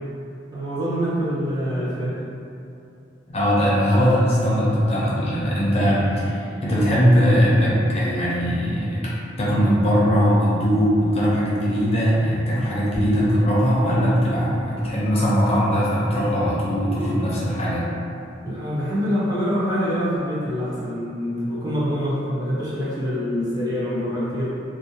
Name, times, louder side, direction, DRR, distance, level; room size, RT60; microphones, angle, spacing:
voice 1, 0.5-2.2 18.4-24.5, equal, 20° right, -9 dB, 0.5 m, -25 dB
voice 2, 3.3-9.1 9.4-17.9, equal, 35° left, -7 dB, 0.4 m, -20 dB
2.4 x 2.0 x 2.6 m, 2.6 s
head